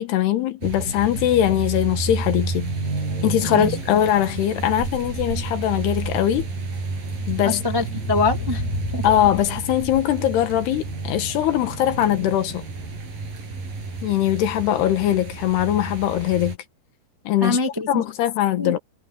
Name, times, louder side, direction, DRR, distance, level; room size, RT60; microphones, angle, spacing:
voice 1, 0.0-2.7 3.2-6.5 7.3-7.6 9.0-12.6 14.0-16.6 17.2-17.6 17.9-18.8, left 11 dB, 85° left, 3.5 m, -21 dB
sound 1, 0.6-16.6, right 3 dB, 60° right, 9.8 m, -31 dB
sound 2, 6.8-12.0, left 2 dB, 65° left, 6.2 m, -34 dB
voice 2, 7.4-8.6 8.9-9.0 17.4-18.0 18.6-18.7, left 3 dB, 15° right, 0.7 m, -24 dB
omnidirectional pair, 4.6 m